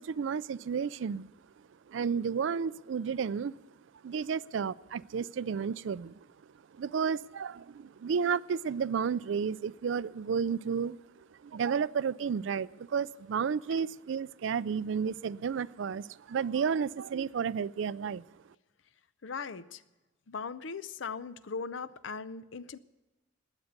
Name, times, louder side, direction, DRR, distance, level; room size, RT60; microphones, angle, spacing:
voice 1, 0.0-1.3 1.9-3.5 4.0-6.1 6.7-11.0 11.4-18.2, right 6 dB, 65° right, 19 dB, 0.4 m, -32 dB
voice 2, 19.2-19.8 20.3-22.8, left 5 dB, 70° left, 15 dB, 0.6 m, -39 dB
20.5 x 8.1 x 6.5 m, 1.1 s
head